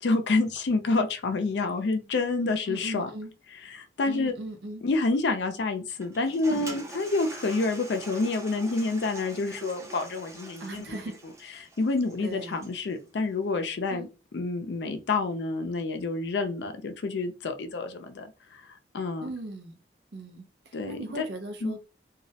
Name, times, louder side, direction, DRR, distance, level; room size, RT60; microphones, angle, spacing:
voice 1, 0.0-3.1 3.7-4.3 4.8-11.0 11.6-14.1 14.3-19.3 20.7-21.3 21.6-21.7, left 3 dB, 85° left, 0.5 m, -28 dB
voice 2, 2.7-3.3 4.1-4.8 10.6-11.2 12.2-12.7 13.9-14.1 19.2-19.8 20.1-21.8, right 1 dB, 75° right, 0.5 m, -38 dB
Toilet flush, 6.0-12.9, right 1 dB, 15° right, 0.4 m, -44 dB
2.3 x 2.0 x 2.7 m
head